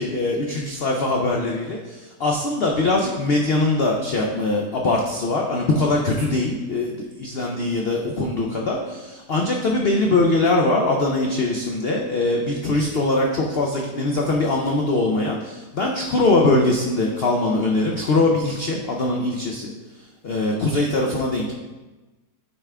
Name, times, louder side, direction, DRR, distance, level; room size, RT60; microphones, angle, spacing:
voice 1, 0.0-19.7 20.2-21.5, left 2 dB, 90° left, 0 dB, 0.5 m, -22 dB
9.2 x 3.6 x 3.3 m, 1.2 s
omnidirectional pair, 1.8 m